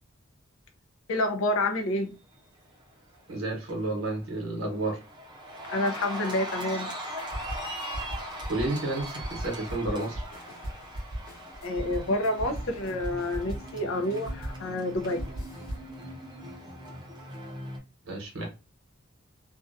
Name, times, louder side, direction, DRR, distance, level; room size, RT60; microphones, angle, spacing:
voice 1, 1.1-2.1 5.7-6.9 11.6-15.3, left 1 dB, 90° left, 6 dB, 0.5 m, -28 dB
Cheering, 2.9-3.3 3.7-17.8, equal, 20° right, 0.5 m, -40 dB
voice 2, 3.3-5.0 8.5-10.2 18.0-18.5, right 2 dB, 75° right, 1 dB, 0.9 m, -31 dB
sound 1, 7.2-13.8 14.1-15.9, equal, 50° left, 1.0 m, -38 dB
2.4 x 2.2 x 2.5 m, 0.30 s
head